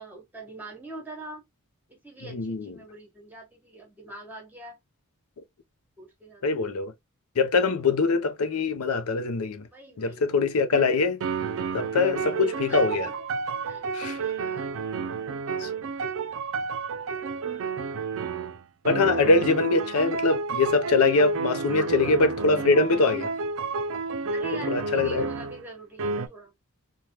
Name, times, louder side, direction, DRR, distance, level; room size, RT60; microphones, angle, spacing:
voice 1, 0.0-1.4 1.9-4.8 6.0-6.7 9.7-10.2 12.0-13.2 13.6-13.9 14.2-14.7 17.1-17.8 21.7-22.2 24.3-26.5, right 1 dB, 10° right, 1.1 m, -44 dB
voice 2, 2.3-2.7 6.4-6.9 7.4-9.6 10.0-11.2 11.7-13.1 13.9-14.2 15.6-15.7 18.8-23.3 24.7-25.3, left 3 dB, 75° left, 0.6 m, -23 dB
sound 1, 10.7-10.9 11.2-25.6 26.0-26.3, right 4 dB, 65° right, 0.4 m, -30 dB
3.4 x 2.2 x 2.8 m
head